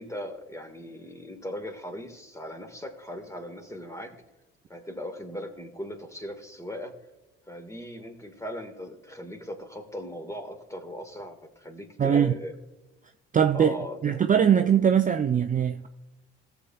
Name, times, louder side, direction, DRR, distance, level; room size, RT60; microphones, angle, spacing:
voice 1, 0.0-4.2 4.7-7.0 7.5-12.5 13.5-14.2, equal, 10° left, 1.8 m, -38 dB
voice 2, 12.0-12.3 13.3-13.7 14.0-15.9, right 8 dB, 25° right, 0.5 m, -21 dB
18.0 x 7.1 x 2.4 m
hypercardioid pair, 50°, 30 cm